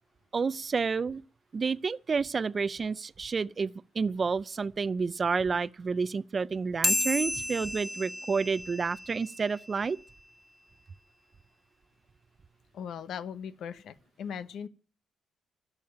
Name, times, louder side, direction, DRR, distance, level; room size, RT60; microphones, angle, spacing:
voice 1, 0.3-1.2 1.5-10.0, right 5 dB, 35° right, 0.5 m, -30 dB
sound 1, 6.8-9.7, left 2 dB, 10° left, 1.2 m, -32 dB
voice 2, 12.7-14.7, left 7 dB, 70° left, 1.0 m, -39 dB
12.5 x 7.1 x 8.9 m
cardioid pair, 90°, 0 cm